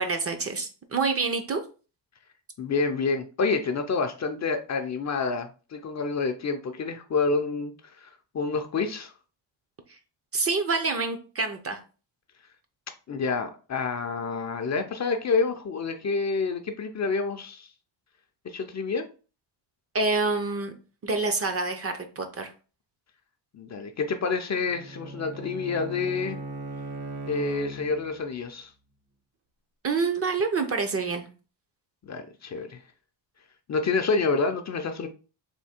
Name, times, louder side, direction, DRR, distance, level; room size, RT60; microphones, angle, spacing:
voice 1, 0.0-1.6 10.3-11.8 19.9-20.7 21.0-22.5 29.8-31.3, right 4 dB, 30° right, 0.6 m, -27 dB
voice 2, 2.6-7.7 8.0-8.1 8.3-9.1 13.1-17.7 18.4-19.1 23.5-26.4 27.3-28.7 32.1-32.8 33.7-35.1, left 4 dB, 40° left, 0.5 m, -28 dB
Bowed string instrument, 24.7-28.3, right 2 dB, 55° right, 1.0 m, -38 dB
3.6 x 2.7 x 4.3 m
cardioid pair, 120°, 45 cm